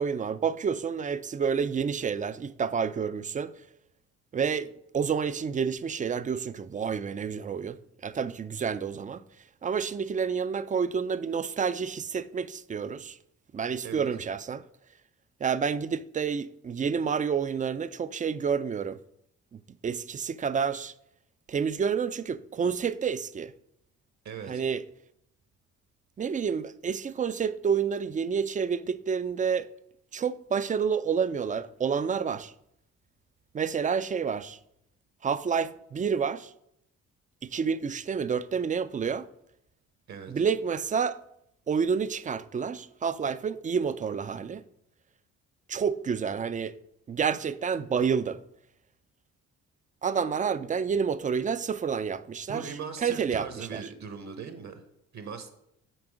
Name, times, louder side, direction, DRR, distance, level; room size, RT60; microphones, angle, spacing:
voice 1, 0.0-3.5 4.3-4.7 4.9-9.2 9.6-13.2 13.5-14.6 15.4-19.0 19.5-20.9 21.5-23.5 24.5-24.8 26.2-29.7 30.1-32.5 33.5-34.6 35.2-36.5 37.4-39.3 40.3-41.2 41.7-44.6 45.7-46.7 47.1-48.4 50.0-52.7 53.0-53.8, right 6 dB, 25° right, 0.4 m, -29 dB
voice 2, 24.2-24.6 40.1-40.3 52.5-54.8 55.1-55.5, right 6 dB, 55° right, 1.1 m, -39 dB
6.1 x 4.2 x 5.0 m
supercardioid pair, 65°, 34 cm